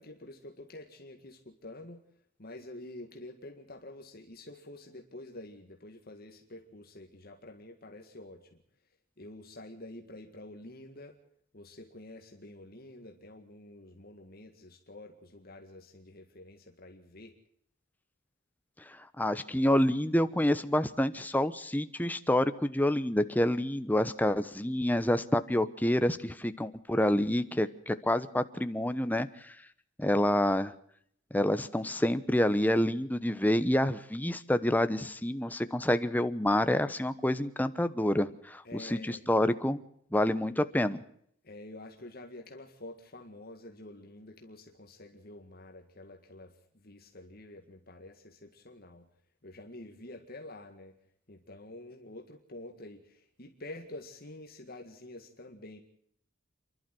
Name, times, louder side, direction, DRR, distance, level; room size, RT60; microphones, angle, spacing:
voice 1, 0.0-2.0 2.4-8.6 9.2-11.2 11.5-17.3 38.6-39.3 41.4-49.1 49.4-50.9 51.3-55.8, left 1 dB, 50° left, 3 dB, 2.0 m, -48 dB
voice 2, 19.2-29.5 30.0-30.7 31.3-39.8 40.1-41.0, left 1 dB, 10° left, 11 dB, 1.0 m, -28 dB
29.5 x 12.0 x 7.8 m, 0.67 s
head